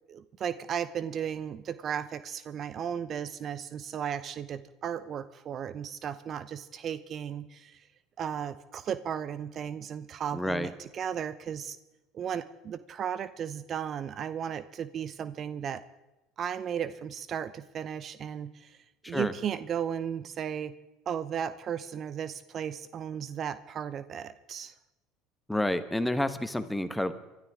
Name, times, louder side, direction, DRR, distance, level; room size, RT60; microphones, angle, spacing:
voice 1, 0.1-7.9 8.2-11.8 12.1-15.8 16.4-20.7 21.1-24.7, right 8 dB, 45° right, 14 dB, 0.6 m, -35 dB
voice 2, 10.3-10.7 19.0-19.3 25.5-27.1, left 1 dB, 5° left, 10 dB, 1.3 m, -29 dB
24.0 x 13.0 x 3.7 m, 1.0 s
hypercardioid pair, 80°, 0 cm